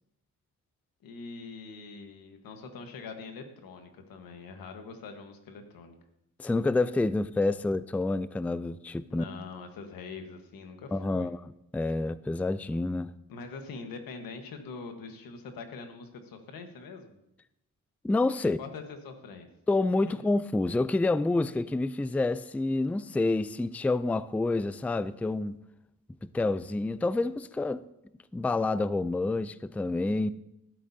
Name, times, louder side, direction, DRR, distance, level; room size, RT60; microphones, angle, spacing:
voice 1, 1.0-6.0 9.1-11.3 13.3-17.2 18.6-19.5 20.1-20.3, left 4 dB, 90° left, 1.4 m, -43 dB
voice 2, 6.4-9.2 10.9-11.4 11.7-13.1 18.0-18.6 19.7-25.6 26.2-27.9 28.3-30.3, left 2 dB, 5° left, 0.3 m, -28 dB
12.5 x 12.5 x 2.8 m
cardioid pair, 65°, 34 cm